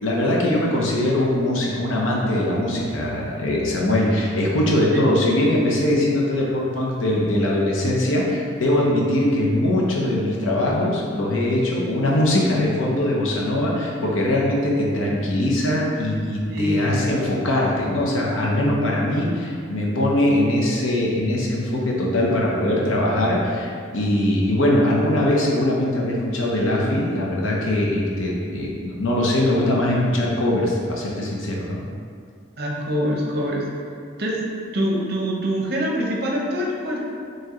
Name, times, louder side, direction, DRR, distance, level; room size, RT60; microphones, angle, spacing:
voice 1, 0.0-31.8, left 1 dB, 85° left, -3 dB, 0.8 m, -21 dB
voice 2, 16.5-17.1 32.6-33.6 34.2-34.4 34.7-37.0, equal, 50° right, -2 dB, 0.7 m, -24 dB
4.6 x 3.1 x 3.0 m, 2.2 s
head